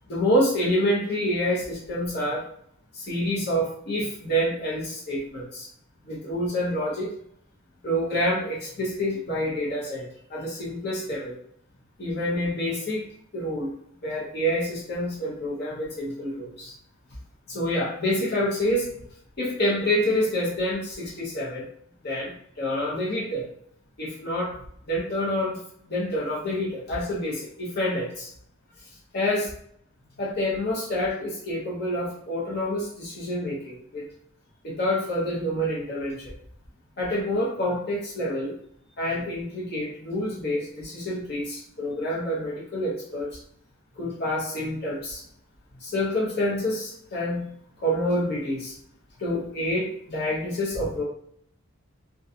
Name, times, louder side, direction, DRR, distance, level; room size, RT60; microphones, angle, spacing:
voice 1, 0.1-2.4 2.9-5.7 6.1-7.1 7.8-11.4 12.0-13.7 14.0-16.7 17.5-18.9 19.4-21.7 22.0-23.5 24.0-24.6 24.8-25.6 25.9-28.3 29.1-29.5 30.2-34.1 34.6-36.3 37.0-38.5 39.0-43.4 44.0-45.2 45.8-48.7 49.2-51.0, equal, 45° left, -5 dB, 0.6 m, -27 dB
2.4 x 2.2 x 2.6 m, 0.67 s
head